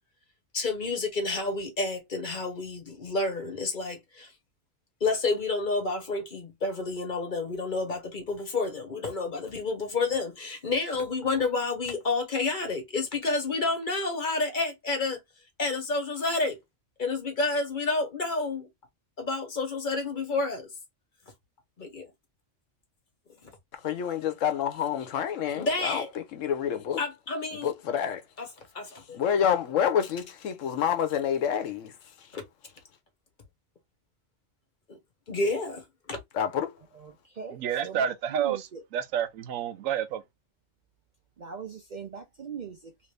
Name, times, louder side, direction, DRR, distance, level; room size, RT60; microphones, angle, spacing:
voice 1, 0.5-4.3 5.0-15.2 15.6-16.6 17.0-18.7 19.2-20.7 21.8-22.1 23.4-23.5 25.5-26.1 27.0-27.7 28.4-28.5 28.7-29.2 32.3-32.4 34.9-35.0 35.3-36.2, left 3 dB, 40° left, 1.1 m, -29 dB
voice 2, 23.8-27.0 27.6-28.2 29.1-31.9 36.3-36.7, left 8 dB, 75° left, 1.1 m, -28 dB
voice 3, 37.0-38.8 41.4-42.9, right 6 dB, 55° right, 0.5 m, -41 dB
voice 4, 37.5-40.2, right 9 dB, 90° right, 1.0 m, -29 dB
3.0 x 2.6 x 3.2 m
omnidirectional pair, 1.3 m